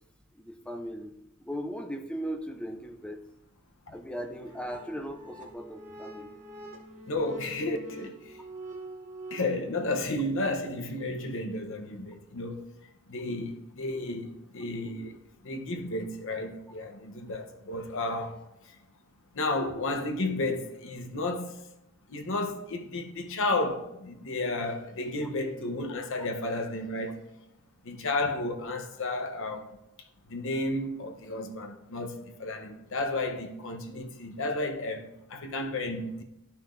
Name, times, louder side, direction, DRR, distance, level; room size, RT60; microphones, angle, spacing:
voice 1, 0.3-3.2 3.9-6.3 25.2-25.3, equal, 5° left, 0.5 m, -38 dB
sound 1, 4.1-9.4, right 1 dB, 40° right, 1.1 m, -45 dB
voice 2, 7.1-8.4 9.3-12.6 13.1-18.8 19.3-21.6 22.1-27.3 27.8-29.8 30.3-36.2, left 2 dB, 60° left, 0.8 m, -32 dB
12.0 x 5.6 x 2.5 m
head